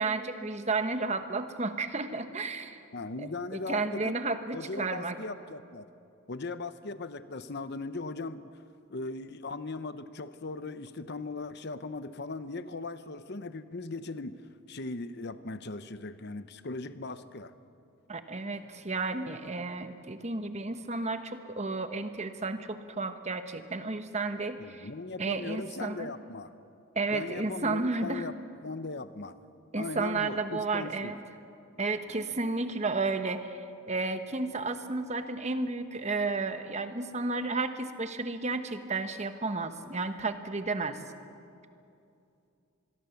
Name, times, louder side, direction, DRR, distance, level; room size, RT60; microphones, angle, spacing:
voice 1, 0.0-2.8 3.5-5.2 18.1-24.9 25.2-26.1 26.9-28.3 29.7-31.2 31.8-41.0, right 3 dB, 30° right, 9 dB, 1.2 m, -32 dB
voice 2, 2.9-4.2 4.5-5.9 6.3-8.5 8.9-14.4 14.7-17.5 24.6-26.5 27.1-28.3 28.6-29.4 29.7-31.1, left 3 dB, 50° left, 12 dB, 0.9 m, -38 dB
25.0 x 22.0 x 7.1 m, 2.6 s
head